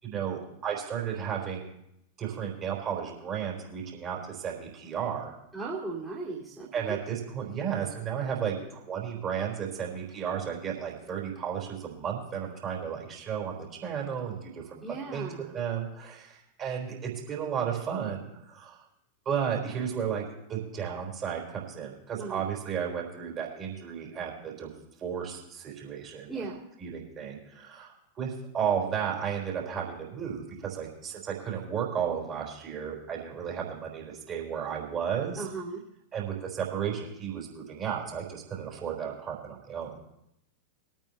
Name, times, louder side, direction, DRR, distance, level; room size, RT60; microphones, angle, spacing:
voice 1, 0.0-1.7 2.2-5.3 6.7-18.8 19.3-20.2 20.5-24.7 25.0-26.4 26.8-35.5 36.1-40.0, right 8 dB, 30° right, -2 dB, 3.8 m, -33 dB
voice 2, 5.5-7.0 14.8-15.6 22.2-22.5 26.3-26.6 35.4-35.8, right 3 dB, 5° right, -8 dB, 2.4 m, -37 dB
21.5 x 9.0 x 3.2 m, 0.81 s
figure-of-eight pair, 90°, 0 cm